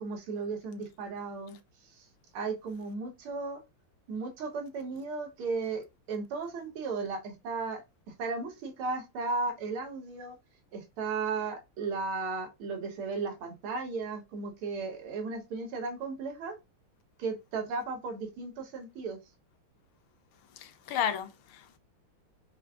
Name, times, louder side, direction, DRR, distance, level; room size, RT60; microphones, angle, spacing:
voice 1, 0.0-1.6 1.9-2.1 2.3-3.6 4.1-7.8 8.1-10.4 10.7-16.6 17.2-19.2, right 4 dB, 90° right, 1.8 m, -35 dB
voice 2, 20.6-21.8, left 9 dB, 85° left, 1.6 m, -33 dB
5.1 x 3.4 x 2.3 m
omnidirectional pair, 2.3 m